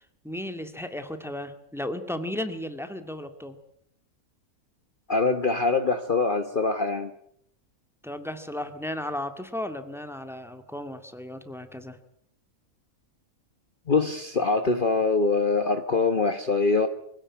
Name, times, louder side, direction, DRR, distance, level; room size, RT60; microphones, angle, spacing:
voice 1, 0.0-3.6 8.0-12.0, left 1 dB, ahead, 8 dB, 1.9 m, -35 dB
voice 2, 5.1-7.1 13.9-16.9, left 3 dB, 40° left, 8 dB, 1.3 m, -23 dB
25.0 x 16.5 x 9.6 m, 0.71 s
omnidirectional pair, 1.5 m